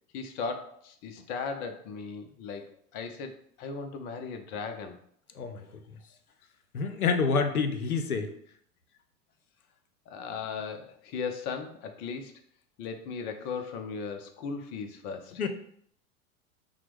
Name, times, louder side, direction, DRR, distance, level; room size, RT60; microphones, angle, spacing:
voice 1, 0.1-5.0 10.1-12.3 12.8-15.4, left 5 dB, 25° left, 6 dB, 0.3 m, -37 dB
voice 2, 5.4-5.7 6.7-8.3 15.4-15.5, left 5 dB, 85° left, 8 dB, 0.6 m, -27 dB
5.7 x 2.1 x 3.3 m, 0.65 s
figure-of-eight pair, 85°, 43 cm